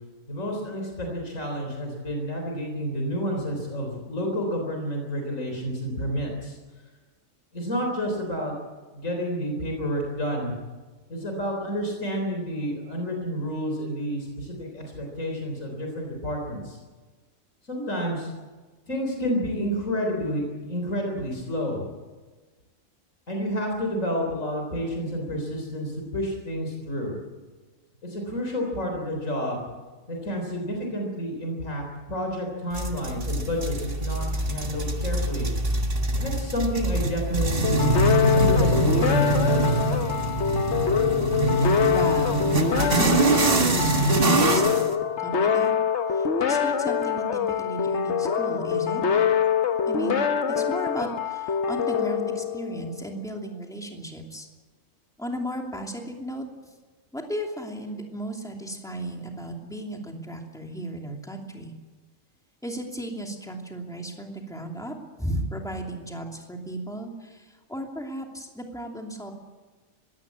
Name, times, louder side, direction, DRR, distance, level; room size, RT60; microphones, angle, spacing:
voice 1, 0.3-6.6 7.5-8.5 8.9-10.5 11.1-16.8 17.7-18.3 18.9-21.9 23.3-27.1 28.0-29.6 30.1-35.5 36.2-37.9 38.3-39.8, equal, 85° left, 1 dB, 4.3 m, -30 dB
sound 1, 32.7-44.9, right 2 dB, 45° right, 1.9 m, -24 dB
sound 2, 37.6-53.0, left 7 dB, 60° left, 1.3 m, -25 dB
voice 2, 41.6-44.8 45.2-45.7 46.1-49.0 49.9-54.5 55.2-56.4 57.1-61.7 62.6-69.3, right 1 dB, 5° left, 1 dB, 2.8 m, -35 dB
21.5 x 17.0 x 8.4 m, 1.3 s
omnidirectional pair, 1.3 m